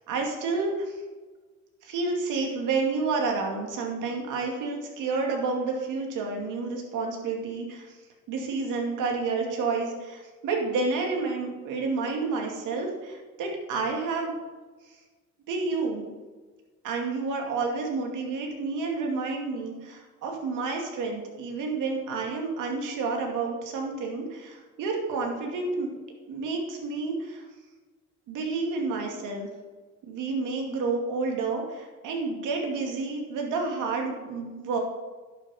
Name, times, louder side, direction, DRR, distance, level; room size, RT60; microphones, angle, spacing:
voice 1, 0.1-1.0 1.8-8.0 8.3-14.4 15.5-16.1 16.8-25.9 26.3-27.4 28.3-29.5 30.0-34.8, right 4 dB, 90° right, 1 dB, 2.4 m, -30 dB
11.0 x 6.1 x 6.7 m, 1.3 s
cardioid pair, 90°, 30 cm